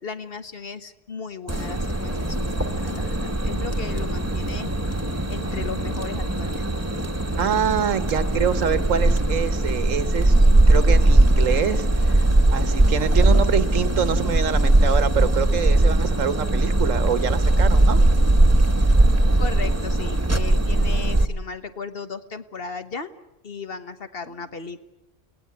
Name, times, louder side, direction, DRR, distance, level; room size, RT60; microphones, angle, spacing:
voice 1, 0.0-4.7 5.3-6.7 19.4-23.1 23.4-24.8, left 5 dB, 50° left, 9 dB, 1.4 m, -36 dB
sound 1, 1.5-21.3, right 2 dB, 15° right, 1.2 m, -20 dB
voice 2, 7.4-10.4 10.7-18.0, right 7 dB, 85° right, 13 dB, 1.5 m, -25 dB
29.0 x 18.5 x 9.6 m, 0.96 s
omnidirectional pair, 1.3 m